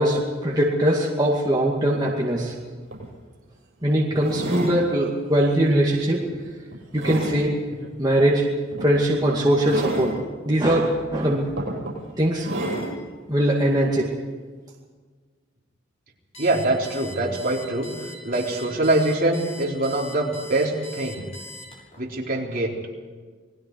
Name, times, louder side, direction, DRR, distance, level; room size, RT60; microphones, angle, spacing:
voice 1, 0.0-2.5 3.8-6.2 6.9-7.6 8.0-8.5 8.8-10.1 10.5-11.5 12.2-12.5 13.3-14.1, right 1 dB, 20° right, -4 dB, 2.3 m, -21 dB
sound 1, 2.5-2.6 2.9-3.1 4.2-4.8 5.4-5.7 6.2-7.4 8.7-8.9 9.6-10.2 11.0-11.1 11.6-12.0 12.4-13.0 13.7-13.8, right 1 dB, 65° right, 8.0 m, -30 dB
Alarm, 16.3-22.0, equal, 30° left, 6.5 m, -41 dB
voice 2, 16.4-21.2 22.0-22.7, right 2 dB, 45° right, -2 dB, 3.7 m, -24 dB
29.0 x 20.0 x 4.7 m, 1.5 s
head